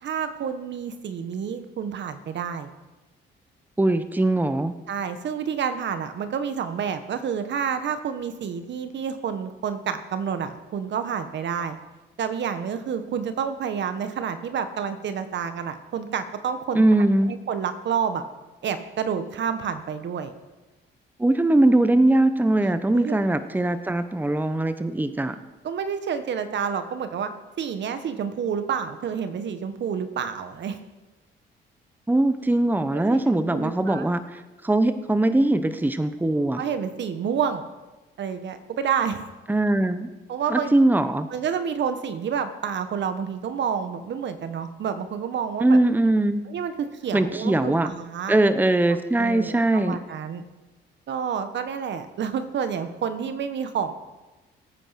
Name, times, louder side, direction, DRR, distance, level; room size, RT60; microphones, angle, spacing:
voice 1, 0.0-2.7 4.9-11.8 12.2-16.8 17.3-18.2 18.6-20.3 22.9-23.2 25.6-27.3 27.6-30.8 32.9-33.2 33.5-34.1 36.6-37.6 38.2-39.2 40.3-40.7 41.3-45.8 46.5-46.7 47.0-48.4 48.8-50.4 51.1-53.9, right 7 dB, 65° right, 9 dB, 1.5 m, -29 dB
voice 2, 3.8-4.7 16.7-17.3 21.2-25.4 32.1-36.6 39.5-40.1 40.5-41.3 45.6-46.4 47.1-47.9 48.3-50.0, right 2 dB, 10° right, 10 dB, 1.0 m, -21 dB
19.0 x 9.1 x 5.9 m, 1.1 s
cardioid pair, 90°, 20 cm